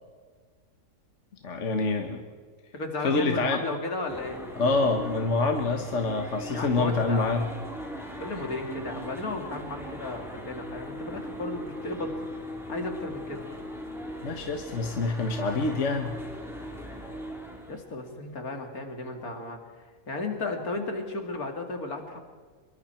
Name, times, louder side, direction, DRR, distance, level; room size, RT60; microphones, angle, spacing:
voice 1, 1.4-2.2 3.0-3.6 4.6-7.5 14.2-16.2, left 3 dB, 50° left, 4 dB, 1.7 m, -26 dB
voice 2, 2.7-4.4 6.5-7.4 8.2-12.1 12.7-13.4 17.7-19.6 20.1-22.2, left 2 dB, 70° left, 4 dB, 3.0 m, -34 dB
sound 1, 4.1-17.8, equal, ahead, 3.5 m, -39 dB
26.0 x 23.0 x 4.5 m, 1.5 s
omnidirectional pair, 1.6 m